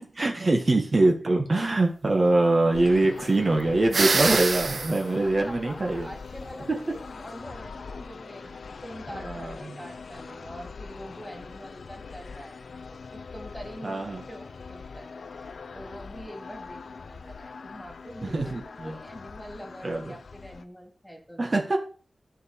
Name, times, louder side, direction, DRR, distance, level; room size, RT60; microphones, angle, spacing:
voice 1, 0.0-6.1 9.1-9.8 13.8-14.2 18.2-18.9 19.8-20.1 21.4-21.8, right 2 dB, 40° right, 1 dB, 1.6 m, -24 dB
sound 1, 2.7-20.6, left 5 dB, 85° left, 0.6 m, -42 dB
sound 2, 3.9-5.0, right 4 dB, 60° right, 0.5 m, -24 dB
voice 2, 5.2-12.6 12.9-21.5, equal, 5° left, 2 dB, 2.7 m, -44 dB
11.0 x 5.2 x 6.6 m, 0.40 s
wide cardioid pair, 105°, 0 cm